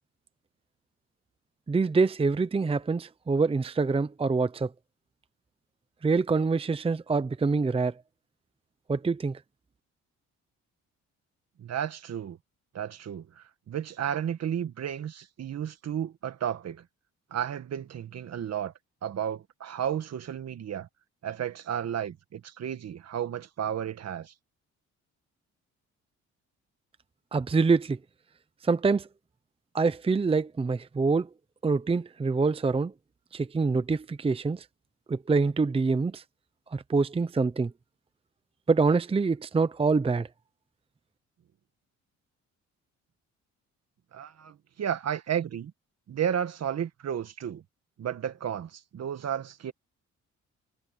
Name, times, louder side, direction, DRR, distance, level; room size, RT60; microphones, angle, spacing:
voice 1, 1.7-4.7 6.0-7.9 8.9-9.4 27.3-28.0 28.6-29.1 29.7-31.3 31.6-32.9 33.3-34.6 35.1-36.2 36.7-37.7 38.7-40.3, right 4 dB, 20° right, 0.7 m, -25 dB
voice 2, 11.6-12.4 12.7-16.8 17.3-18.7 19.0-20.9 21.2-24.3 44.1-45.7 46.1-47.6 48.0-49.7, right 9 dB, 55° right, 1.9 m, -33 dB
cardioid pair, 90°, 30 cm